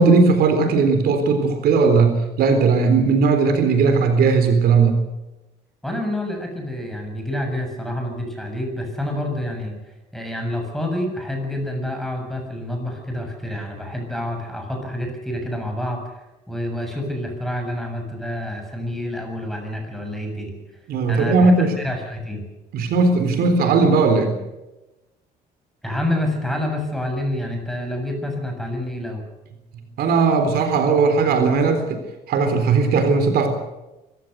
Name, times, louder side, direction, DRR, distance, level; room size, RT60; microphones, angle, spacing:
voice 1, 0.0-4.9 20.9-21.7 22.7-24.4 30.0-32.0 32.3-33.5, right 4 dB, 65° right, 7 dB, 3.8 m, -17 dB
voice 2, 5.8-20.5 21.1-22.4 25.8-29.2, left 1 dB, ahead, 3 dB, 7.1 m, -28 dB
25.0 x 15.5 x 8.0 m, 1.0 s
cardioid pair, 110°, 17 cm